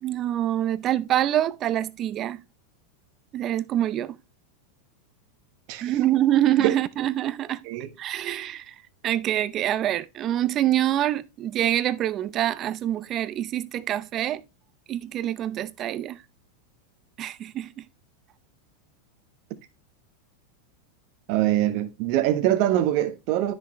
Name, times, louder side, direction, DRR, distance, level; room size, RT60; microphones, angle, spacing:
voice 1, 0.0-2.4 3.3-4.1 5.8-7.6 8.0-8.7 9.0-14.4 14.9-16.2 17.2-17.8, right 12 dB, 40° right, 0.7 m, -25 dB
voice 2, 21.3-23.5, right 13 dB, 55° right, 1.2 m, -23 dB
10.0 x 6.3 x 3.1 m
hypercardioid pair, 105°, 0 cm